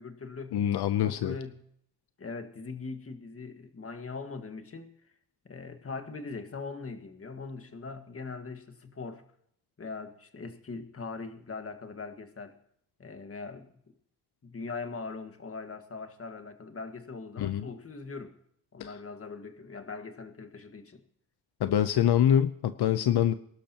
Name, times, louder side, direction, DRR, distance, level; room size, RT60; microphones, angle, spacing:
voice 1, 0.0-0.6 1.0-1.7 2.2-4.9 5.4-9.2 9.8-12.5 13.0-13.7 14.4-18.4 18.7-21.0, left 4 dB, 35° left, 1.7 m, -41 dB
voice 2, 0.5-1.4 17.4-17.7 18.8-18.9 21.6-23.3, left 10 dB, 80° left, 0.7 m, -25 dB
22.5 x 12.0 x 2.9 m
cardioid pair, 100°, 38 cm